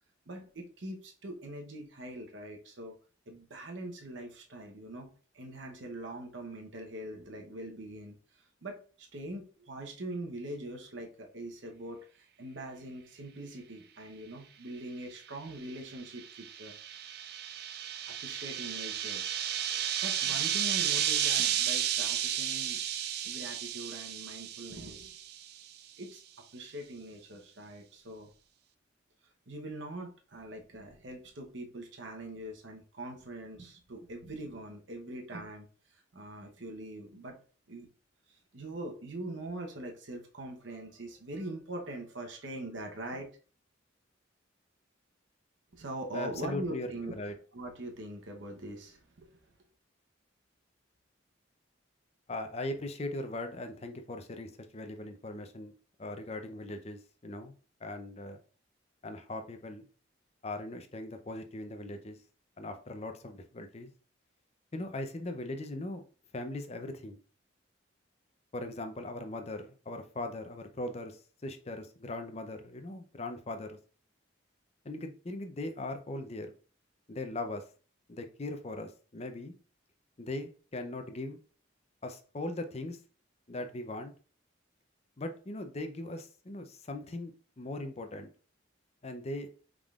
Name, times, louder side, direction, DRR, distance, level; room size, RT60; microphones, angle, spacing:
voice 1, 0.3-2.9 3.3-17.1 18.1-19.2 19.7-22.8 23.2-25.1 26.0-28.3 29.5-37.4 37.7-37.9 38.3-43.3 45.7-49.4, right 1 dB, 70° right, 2 dB, 0.9 m, -43 dB
sound 1, 15.7-25.5, right 10 dB, 50° right, 0.3 m, -33 dB
voice 2, 46.1-47.3 52.3-55.7 56.0-57.5 57.8-58.4 59.0-59.9 60.4-62.2 62.6-63.9 64.7-66.0 66.3-67.2 68.5-73.8 74.8-76.5 77.1-77.6 78.1-79.5 80.2-81.4 82.0-83.0 83.5-84.1 85.2-87.3 87.6-88.3 89.0-89.5, left 2 dB, 30° left, 7 dB, 0.6 m, -39 dB
5.3 x 3.7 x 2.4 m, 0.39 s
head